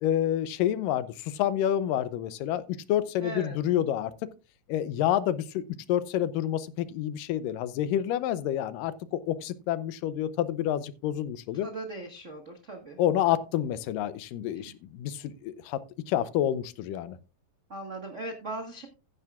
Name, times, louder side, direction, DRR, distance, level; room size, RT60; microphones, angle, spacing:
voice 1, 0.0-2.6 2.9-4.1 4.7-5.6 5.9-11.7 13.0-15.8 16.1-17.2, left 11 dB, 90° left, 2.4 m, -28 dB
voice 2, 3.2-3.6 11.6-13.0 14.5-14.7 17.7-18.9, right 2 dB, 75° right, 0.6 m, -39 dB
15.0 x 9.5 x 2.4 m
omnidirectional pair, 3.9 m